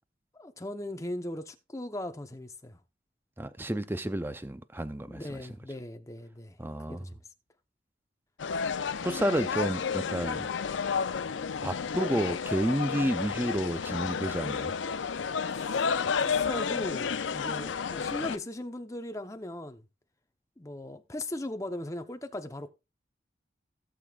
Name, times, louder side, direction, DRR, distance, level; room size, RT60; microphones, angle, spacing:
voice 1, 0.3-2.8 5.1-6.6 6.9-7.2 15.5-15.9 16.2-19.8 20.6-22.7, left 1 dB, 15° left, 0.8 m, -38 dB
voice 2, 3.4-5.4 6.6-7.1 9.0-10.5 11.6-14.7, right 1 dB, 10° right, 0.5 m, -31 dB
sound 1, 8.4-18.4, left 6 dB, 90° left, 0.5 m, -31 dB
17.0 x 6.9 x 2.4 m
head